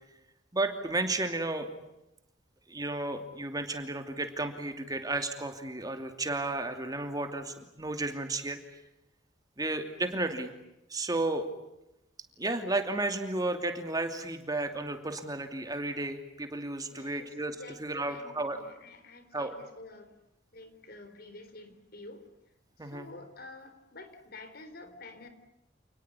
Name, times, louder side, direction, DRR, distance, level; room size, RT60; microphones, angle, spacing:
voice 1, 0.5-1.7 2.7-8.6 9.6-10.5 10.9-11.5 12.4-18.6 19.3-19.5 22.8-23.1, right 2 dB, 20° right, 6 dB, 2.8 m, -33 dB
voice 2, 16.9-20.2 20.5-22.3 22.8-25.3, left 2 dB, 55° left, 10 dB, 4.0 m, -49 dB
29.0 x 20.0 x 9.8 m, 0.88 s
head